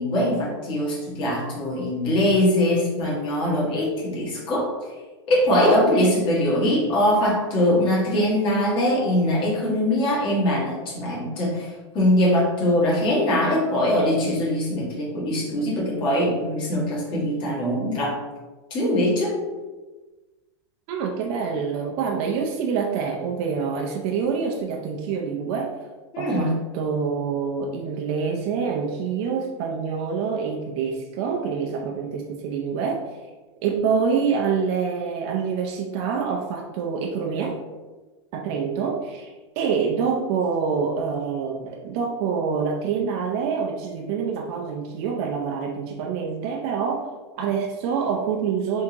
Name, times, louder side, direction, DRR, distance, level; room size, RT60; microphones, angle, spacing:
voice 1, 0.0-4.7 5.3-18.2 18.7-19.4 26.1-26.5, left 1 dB, 35° left, -5 dB, 1.3 m, -22 dB
voice 2, 20.9-25.7 26.2-33.0 33.6-37.6 38.3-47.1 47.4-48.8, right 6 dB, 45° right, 0 dB, 0.4 m, -26 dB
3.4 x 2.7 x 2.9 m, 1.2 s
hypercardioid pair, 130°, 15 cm